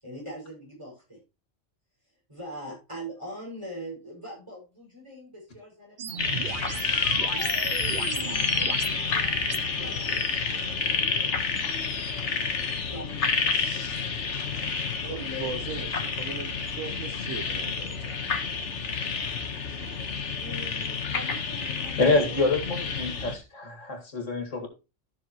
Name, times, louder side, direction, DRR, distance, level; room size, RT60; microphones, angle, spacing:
voice 1, 0.0-1.2 2.3-6.7 7.2-7.6 8.1-11.4 12.1-14.0 14.4-15.9 20.4-22.5, equal, 25° right, -4 dB, 6.0 m, -43 dB
sound 1, 6.0-9.6, right 7 dB, 50° right, 0.7 m, -36 dB
sound 2, 6.2-23.3, left 5 dB, 70° left, 1.5 m, -29 dB
voice 2, 15.0-18.2, right 5 dB, 80° right, 11 dB, 1.2 m, -38 dB
voice 3, 22.0-24.7, left 3 dB, 90° left, 4 dB, 2.4 m, -26 dB
14.5 x 6.3 x 3.0 m, 0.28 s
omnidirectional pair, 1.3 m